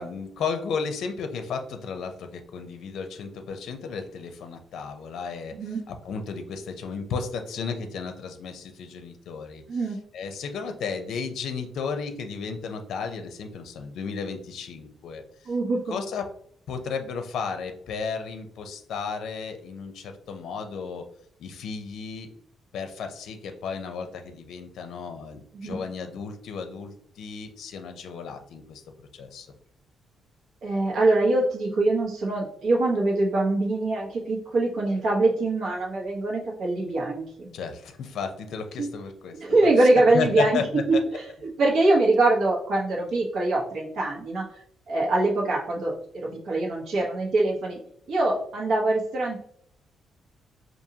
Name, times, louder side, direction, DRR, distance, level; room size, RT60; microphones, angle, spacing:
voice 1, 0.0-5.5 5.9-9.6 10.1-15.2 15.9-16.3 16.7-21.0 21.4-22.3 22.7-28.8 29.2-29.5 37.5-39.4 39.8-41.0, left 5 dB, 70° left, 6 dB, 0.6 m, -33 dB
voice 2, 5.5-5.8 9.7-10.0 15.5-15.8 25.5-25.8 30.6-37.5 38.8-38.9 39.4-40.6 40.9-44.5 44.9-47.8 48.1-49.4, right 2 dB, 65° right, -3 dB, 1.1 m, -23 dB
5.1 x 2.6 x 2.8 m, 0.66 s
cardioid pair, 150°, 0 cm